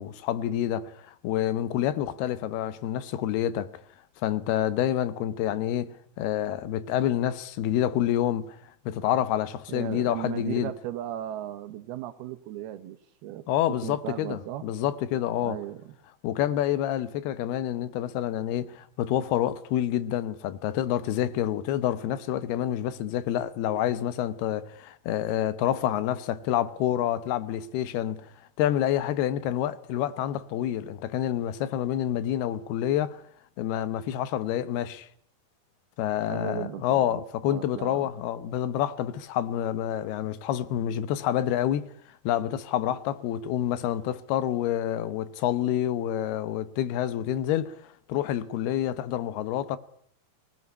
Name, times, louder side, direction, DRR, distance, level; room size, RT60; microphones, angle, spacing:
voice 1, 0.0-3.7 4.2-8.6 8.9-10.7 13.5-15.6 16.2-28.2 28.6-33.2 33.6-35.1 36.0-41.9 42.2-47.7 48.1-49.8, left 11 dB, 90° left, 3.1 m, -28 dB
voice 2, 9.7-14.7 15.4-15.9 36.3-38.1, right 12 dB, 85° right, 3.2 m, -37 dB
19.5 x 19.0 x 9.7 m
omnidirectional pair, 4.4 m